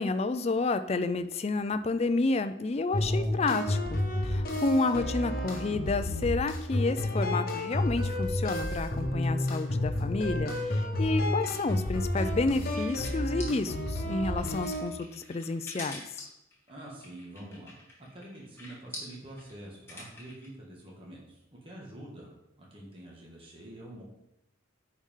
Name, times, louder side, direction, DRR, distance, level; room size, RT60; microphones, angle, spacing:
voice 1, 0.0-16.0, left 3 dB, 30° left, 10 dB, 0.4 m, -30 dB
sound 1, 2.9-14.9, left 1 dB, 45° left, 1.2 m, -30 dB
sound 2, 11.7-20.5, left 1 dB, 10° left, 1.7 m, -46 dB
voice 2, 16.7-17.8 18.1-22.3 22.6-24.0, right 1 dB, 25° right, -3 dB, 1.7 m, -46 dB
9.6 x 4.8 x 3.7 m, 0.88 s
head